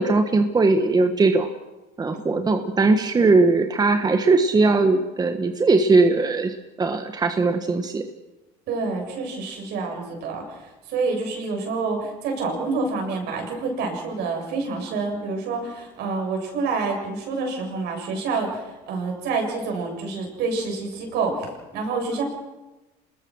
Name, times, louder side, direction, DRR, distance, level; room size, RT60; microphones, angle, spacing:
voice 1, 0.0-1.5 2.0-8.0, right 3 dB, 20° right, 6 dB, 1.4 m, -19 dB
voice 2, 8.7-22.2, right 4 dB, 70° right, 2 dB, 7.6 m, -28 dB
27.5 x 20.5 x 6.4 m, 1.1 s
cardioid pair, 115°, 18 cm